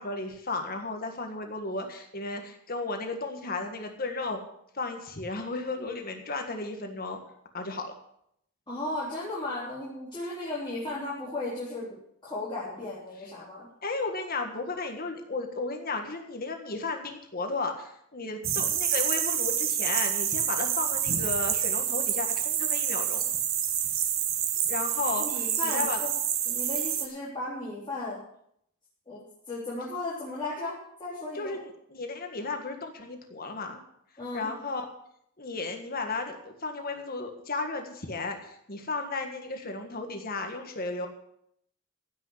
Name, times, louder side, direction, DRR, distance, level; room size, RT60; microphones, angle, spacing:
voice 1, 0.0-4.4 4.8-7.2 7.5-7.9 13.8-23.3 24.7-25.3 25.6-26.0 31.4-33.8 34.3-34.9 35.4-41.1, left 3 dB, 45° left, 4 dB, 1.6 m, -34 dB
voice 2, 8.7-12.0 12.2-13.7 25.2-26.1 26.5-28.2 29.1-31.6 34.2-34.5, left 2 dB, 20° left, -7 dB, 3.6 m, -35 dB
sound 1, 18.4-27.1, right 9 dB, 70° right, 1.4 m, -28 dB
15.5 x 6.4 x 8.1 m, 0.72 s
head